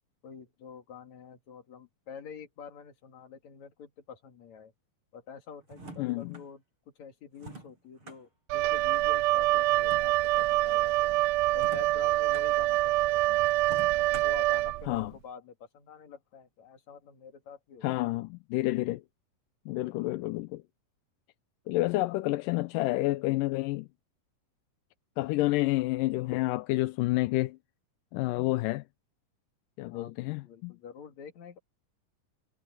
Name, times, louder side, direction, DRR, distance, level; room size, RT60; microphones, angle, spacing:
voice 1, 0.2-4.7 5.1-6.6 7.0-11.2 11.5-13.5 13.9-18.2 29.9-31.6, left 7 dB, 55° left, 3.5 m, -47 dB
toaster pushing, 5.6-6.5 7.4-8.2 9.7-10.5 11.5-12.5 13.6-14.5, right 2 dB, 35° right, 8.5 m, -47 dB
voice 2, 6.0-6.4 14.9-15.1 17.8-19.0 19.7-20.6 21.7-23.9 25.2-27.6 28.1-28.8 29.8-30.7, left 19 dB, 85° left, 2.3 m, -29 dB
Wind instrument woodwind instrument, 8.5-15.1, right 18 dB, 80° right, 2.0 m, -26 dB
omnidirectional pair, 3.9 m